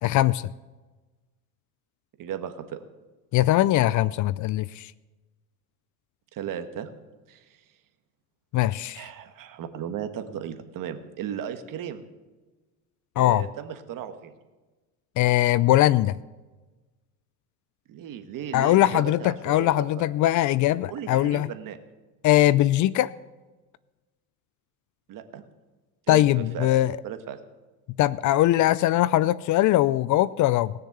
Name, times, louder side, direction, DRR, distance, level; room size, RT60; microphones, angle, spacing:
voice 1, 0.0-0.5 3.3-4.9 8.5-9.1 13.2-13.5 15.2-16.2 18.5-21.5 22.2-23.1 26.1-27.0 28.0-30.7, left 14 dB, 45° left, 20 dB, 0.4 m, -21 dB
voice 2, 2.2-2.8 6.3-6.9 7.3-7.4 8.9-12.1 13.2-14.3 17.9-19.8 20.9-21.8 25.1-25.4 26.1-26.7 27.0-27.4, right 9 dB, 50° right, 8 dB, 1.6 m, -35 dB
19.0 x 6.7 x 8.0 m, 1.2 s
supercardioid pair, 105°, 41 cm